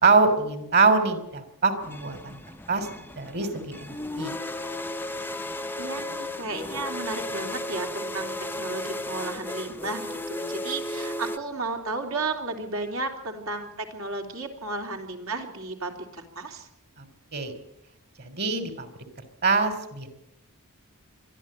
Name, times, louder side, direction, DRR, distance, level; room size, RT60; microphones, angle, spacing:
voice 1, 0.0-2.4 2.7-2.9 3.2-4.3 17.0-17.1 17.3-17.5 18.2-18.9 19.4-20.1, right 4 dB, 50° right, 9 dB, 3.4 m, -24 dB
sound 1, 1.8-11.4, left 1 dB, 10° left, 0.7 m, -34 dB
voice 2, 5.8-16.7, right 3 dB, 65° right, 3 dB, 3.3 m, -33 dB
23.0 x 13.0 x 8.9 m, 0.82 s
head